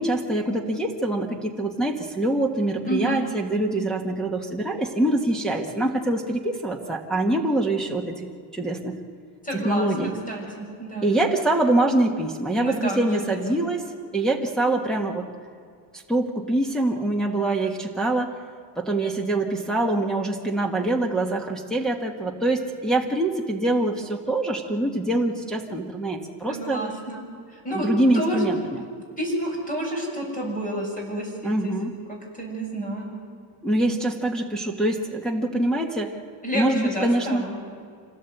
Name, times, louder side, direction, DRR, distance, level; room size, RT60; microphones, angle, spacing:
voice 1, 0.0-9.0 9.5-10.1 11.0-13.8 14.1-15.3 15.9-18.4 18.8-26.8 27.7-28.9 31.4-32.0 33.6-36.1 36.5-37.4, right 1 dB, ahead, -3 dB, 1.6 m, -24 dB
voice 2, 2.9-3.3 9.4-11.1 12.6-13.6 26.5-27.2 27.5-27.9 28.1-28.4 29.2-31.7 32.1-33.2 36.4-37.6, right 1 dB, 20° left, -1 dB, 7.1 m, -30 dB
26.5 x 17.5 x 8.1 m, 2.2 s
cardioid pair, 160°, 45 cm